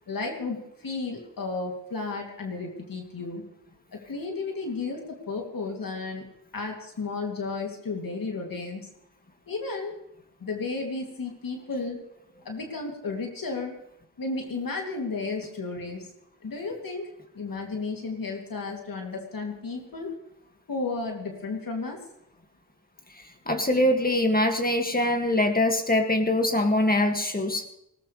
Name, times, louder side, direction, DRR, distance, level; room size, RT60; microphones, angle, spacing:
voice 1, 0.1-3.4 3.9-5.0 5.3-6.3 6.5-8.8 9.5-9.9 10.4-12.0 12.4-13.8 14.2-16.1 16.4-17.1 17.3-20.1 20.7-22.0, left 3 dB, 85° left, 1 dB, 3.0 m, -33 dB
voice 2, 23.1-27.7, left 1 dB, 25° left, 4 dB, 2.2 m, -23 dB
19.5 x 18.5 x 3.4 m, 0.79 s
wide cardioid pair, 85°, 33 cm